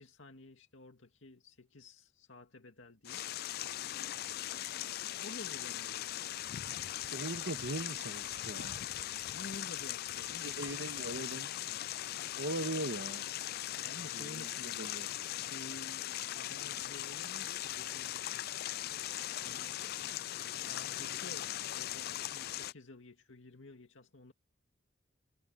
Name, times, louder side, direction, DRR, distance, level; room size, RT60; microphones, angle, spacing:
voice 1, 0.0-3.2 5.2-6.5 9.3-10.7 13.8-14.9 15.5-16.1 16.3-18.4 19.4-19.8 20.5-24.3, left 2 dB, 80° left, 2.2 m, -52 dB
sound 1, 3.0-22.7, left 13 dB, 55° left, 0.4 m, -39 dB
voice 2, 7.1-8.8 10.4-11.5 12.4-13.2 14.1-14.5 14.8-15.1, right 2 dB, 65° right, 1.8 m, -39 dB
head